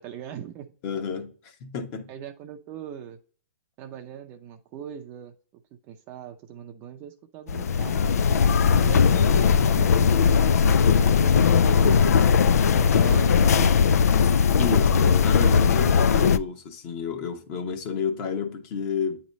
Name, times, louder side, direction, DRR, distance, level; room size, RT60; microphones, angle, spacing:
voice 1, 0.0-0.7 2.1-3.2 3.8-8.1 8.6-12.1 12.7-13.9, right 10 dB, 25° right, 0.5 m, -40 dB
voice 2, 0.8-2.1 14.6-19.2, left 5 dB, 35° left, 1.1 m, -30 dB
sound 1, 7.5-16.4, left 6 dB, 85° left, 0.3 m, -19 dB
9.2 x 3.1 x 4.0 m
hypercardioid pair, 150°, 8 cm